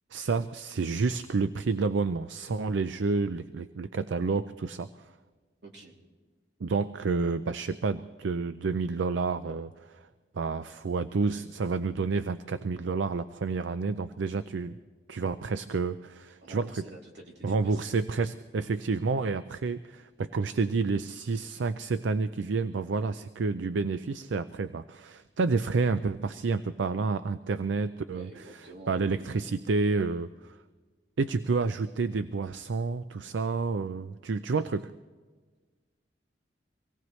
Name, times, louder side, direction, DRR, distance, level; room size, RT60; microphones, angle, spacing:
voice 1, 0.1-5.1 6.6-10.0 10.3-14.8 15.1-16.8 17.4-28.3 28.9-30.6 31.2-34.9, right 4 dB, 90° right, 12 dB, 0.5 m, -29 dB
voice 2, 5.6-6.0 16.4-17.9 28.1-29.5, right 1 dB, 70° right, -1 dB, 2.9 m, -49 dB
25.0 x 18.0 x 3.2 m, 1.4 s
head